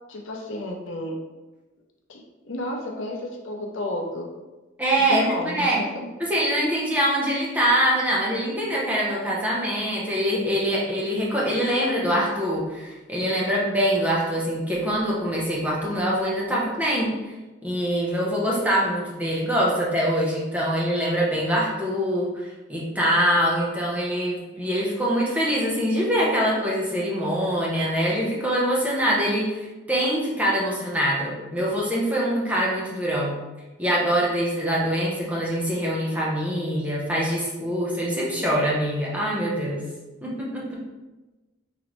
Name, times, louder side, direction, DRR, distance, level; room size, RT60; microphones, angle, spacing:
voice 1, 0.1-1.2 2.1-4.3 5.1-5.9, left 1 dB, 75° left, 0 dB, 0.6 m, -32 dB
voice 2, 4.8-5.8 6.2-17.1 17.6-33.4 33.8-39.9 40.2-40.8, equal, 10° right, -5 dB, 0.7 m, -24 dB
3.9 x 3.1 x 3.0 m, 1.1 s
head